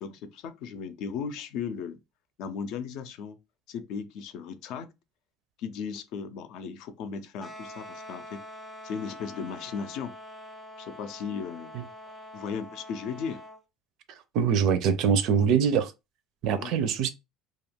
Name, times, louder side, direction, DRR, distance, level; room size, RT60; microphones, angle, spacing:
voice 1, 0.0-2.0 2.4-3.4 3.7-4.9 5.6-8.4 8.8-10.2 10.8-11.7 12.3-13.4 16.5-16.8, left 6 dB, 60° left, 0.4 m, -36 dB
sound 1, 7.4-13.6, left 1 dB, 15° left, 0.6 m, -45 dB
voice 2, 14.3-15.9 16.4-17.1, right 7 dB, 55° right, 0.4 m, -23 dB
2.4 x 2.2 x 3.3 m
cardioid pair, 150°, 0 cm